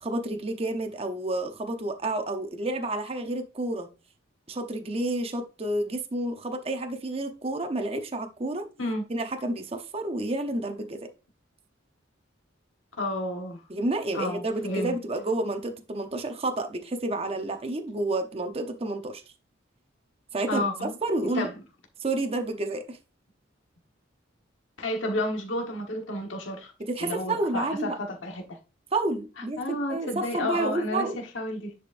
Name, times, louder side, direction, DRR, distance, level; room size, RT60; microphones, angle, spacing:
voice 1, 0.0-3.9 4.5-8.7 9.1-11.1 13.7-19.2 20.3-21.5 22.0-23.0 26.8-28.0 28.9-29.6 29.9-31.2, right 2 dB, 30° right, 0.8 m, -30 dB
voice 2, 13.0-13.6 14.1-15.0 20.5-20.9 21.3-21.6 24.8-26.7 27.0-28.6 29.4-31.7, left 1 dB, 75° left, 1.3 m, -31 dB
10.0 x 5.0 x 2.5 m
head